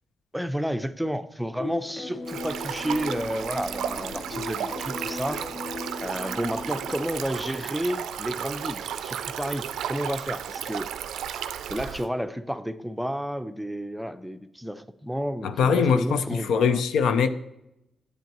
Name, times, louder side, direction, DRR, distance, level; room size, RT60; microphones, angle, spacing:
voice 1, 0.3-5.4 6.0-10.9 11.7-16.8, equal, 5° right, 0.5 m, -31 dB
sound 1, 1.6-7.0, left 3 dB, 45° left, 0.7 m, -37 dB
Stream, 2.3-12.1, right 9 dB, 90° right, 0.4 m, -34 dB
voice 2, 15.4-17.3, left 6 dB, 85° left, 0.4 m, -22 dB
9.2 x 7.9 x 3.0 m
cardioid pair, 65°, 0 cm